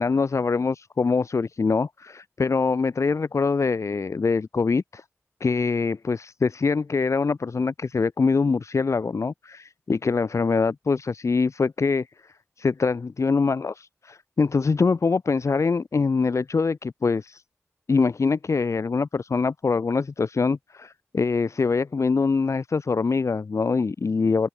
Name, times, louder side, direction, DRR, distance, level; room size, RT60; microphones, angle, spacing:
voice 1, 0.0-5.0 5.4-12.1 12.6-17.4 17.9-24.5, left 4 dB, 70° left, 1.6 m, -24 dB
open air
cardioid pair, 55°, 5 cm